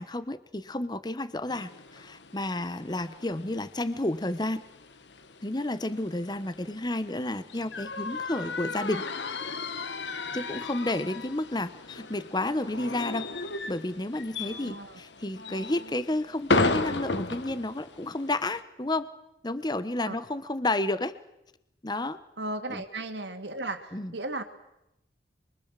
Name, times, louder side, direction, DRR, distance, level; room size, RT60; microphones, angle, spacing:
voice 1, 0.0-4.6 5.4-9.0 10.3-13.3 13.7-19.1 19.4-21.1 21.8-22.2 22.7-22.8 23.9-24.1, left 1 dB, 25° left, 13 dB, 1.0 m, -31 dB
sound 1, 1.5-18.6, left 3 dB, 80° left, 1.4 m, -35 dB
voice 2, 14.4-15.0 20.0-20.2 22.4-24.4, right 2 dB, 80° right, 7 dB, 2.4 m, -36 dB
27.5 x 23.5 x 7.5 m, 0.86 s
head